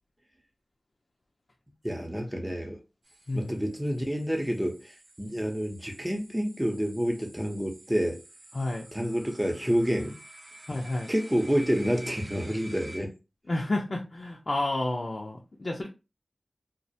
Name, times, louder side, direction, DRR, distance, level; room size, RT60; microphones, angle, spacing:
voice 1, 1.8-2.8 3.3-8.2 8.9-10.1 11.1-13.1, equal, 10° right, 0.7 m, -28 dB
sound 1, 3.0-13.0, right 1 dB, 65° right, 0.7 m, -49 dB
voice 2, 8.5-8.9 10.7-11.1 13.5-15.9, left 2 dB, 60° left, 0.5 m, -30 dB
2.4 x 2.1 x 2.7 m
cardioid pair, 40°, 0 cm